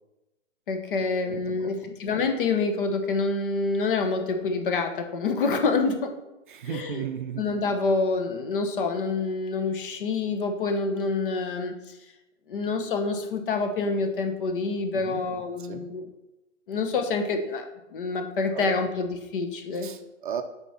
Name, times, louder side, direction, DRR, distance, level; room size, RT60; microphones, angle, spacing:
voice 1, 0.7-6.2 6.7-7.0 7.4-11.8 12.5-16.1 16.7-19.9, left 4 dB, 45° left, 6 dB, 1.2 m, -27 dB
voice 2, 1.2-1.9 6.5-7.4 14.9-15.2 15.6-15.8 18.5-18.8 19.8-20.4, right 8 dB, 40° right, 7 dB, 0.7 m, -35 dB
7.9 x 5.1 x 4.3 m, 0.99 s
hypercardioid pair, 145°, 38 cm